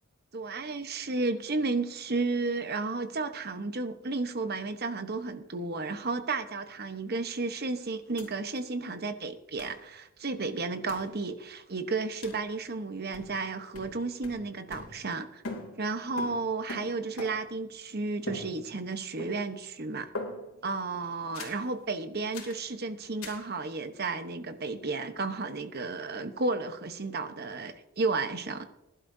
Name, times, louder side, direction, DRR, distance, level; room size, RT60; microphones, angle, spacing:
voice 1, 0.3-15.4 15.8-20.1 20.6-28.7, right 3 dB, 50° right, 8 dB, 1.1 m, -33 dB
sound 1, 8.2-8.3 8.6-8.7 9.6-9.8 10.9-11.1 12.2-12.5 13.1-13.5 13.7-15.2 15.4-17.6 18.3-18.9 19.2-19.7 20.2-20.7 21.3-21.7 22.3-22.6 23.2-23.5, left 2 dB, 90° left, 3.1 m, -42 dB
20.0 x 11.5 x 2.7 m, 0.89 s
head